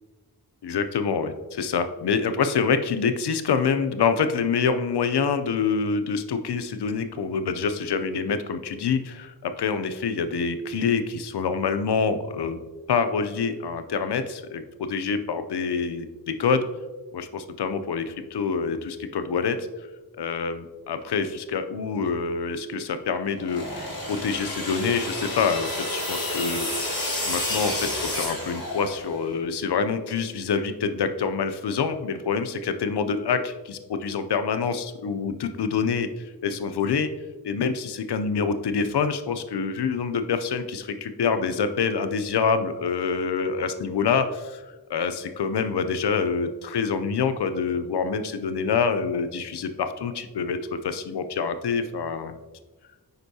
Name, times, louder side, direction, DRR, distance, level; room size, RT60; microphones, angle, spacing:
voice 1, 0.6-12.6 12.9-14.6 14.9-16.6 17.1-19.7 20.1-37.1 37.4-52.4, left 5 dB, 90° left, 10 dB, 0.5 m, -26 dB
sound 1, 23.4-29.2, left 1 dB, 60° left, 2.1 m, -30 dB
8.0 x 5.3 x 2.7 m, 1.2 s
wide cardioid pair, 60°, 39 cm